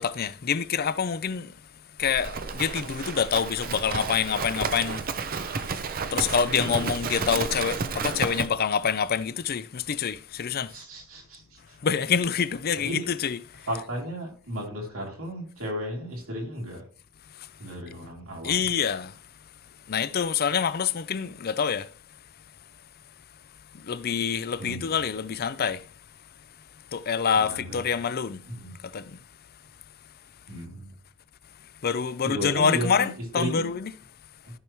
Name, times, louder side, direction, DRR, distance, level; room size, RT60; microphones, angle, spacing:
voice 1, 0.0-1.6 2.0-5.9 6.1-10.8 11.8-13.7 17.3-17.5 18.4-19.2 19.9-21.9 23.7-25.9 26.9-28.4 28.8-29.2 31.8-33.9, left 7 dB, 45° left, 0.5 m, -27 dB
Livestock farm animals working animals, 2.0-8.5, right 5 dB, 45° right, 0.6 m, -31 dB
voice 2, 6.7-7.1 10.7-11.8 12.8-13.0 13.7-16.8 17.6-18.6 24.6-25.0 27.3-27.8 28.5-28.7 30.5-30.9 32.2-33.7, equal, 85° right, 3.2 m, -34 dB
14.0 x 6.0 x 3.1 m
head